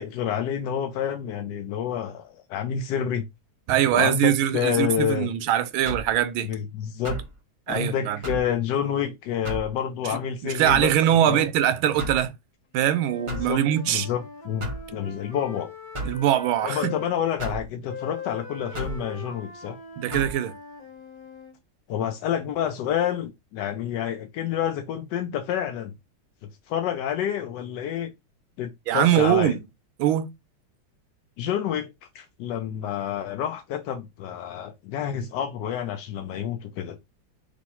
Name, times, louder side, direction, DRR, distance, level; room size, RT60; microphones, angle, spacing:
voice 1, 0.0-3.3 3.9-5.3 6.4-7.2 7.7-10.9 11.3-11.5 13.3-13.6 13.9-14.2 14.4-15.7 16.6-19.8 21.9-25.9 26.4-28.1 28.6-29.6 31.4-37.0, left 9 dB, 75° left, 1.0 m, -28 dB
voice 2, 3.7-6.5 7.7-8.2 10.1-10.2 10.4-12.3 12.7-14.1 16.0-16.9 20.0-20.6 28.9-29.6 30.0-30.3, right 11 dB, 80° right, 1.4 m, -22 dB
sound 1, 5.9-6.2 7.0-7.3 8.2-8.5 9.4-9.7 10.6-10.9 12.0-12.3 13.3-13.6 14.6-14.9 15.9-16.2 17.4-17.7 18.7-19.0 20.1-20.3, right 1 dB, 25° right, 0.6 m, -32 dB
Wind instrument woodwind instrument, 12.7-17.2 17.9-21.5, left 5 dB, 40° left, 0.8 m, -40 dB
3.2 x 3.1 x 4.2 m
omnidirectional pair, 2.3 m